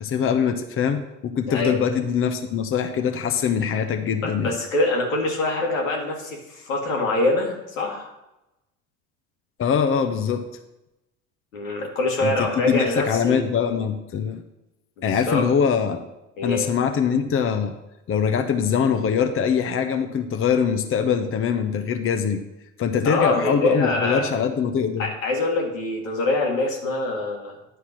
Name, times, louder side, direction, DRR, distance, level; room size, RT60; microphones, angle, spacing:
voice 1, 0.0-4.6 9.6-10.5 12.2-14.4 15.0-16.0 16.4-17.7 18.1-22.4 22.8-25.1, left 7 dB, 35° left, 6 dB, 0.9 m, -23 dB
voice 2, 1.5-1.8 4.2-8.1 11.5-13.4 15.0-15.4 16.4-16.7 23.0-24.3 25.0-27.6, left 2 dB, 85° left, 0 dB, 2.0 m, -24 dB
10.0 x 4.6 x 5.9 m, 0.94 s
hypercardioid pair, 70°, 39 cm